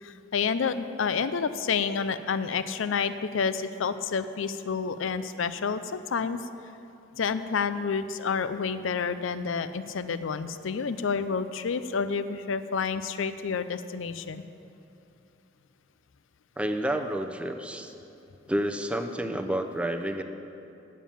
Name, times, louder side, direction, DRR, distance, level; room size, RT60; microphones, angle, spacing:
voice 1, 0.0-6.4 7.2-14.4, left 5 dB, 75° left, 12 dB, 0.5 m, -29 dB
voice 2, 16.6-17.9 18.5-20.2, right 1 dB, 5° right, 6 dB, 0.6 m, -29 dB
9.3 x 7.3 x 8.4 m, 2.8 s
head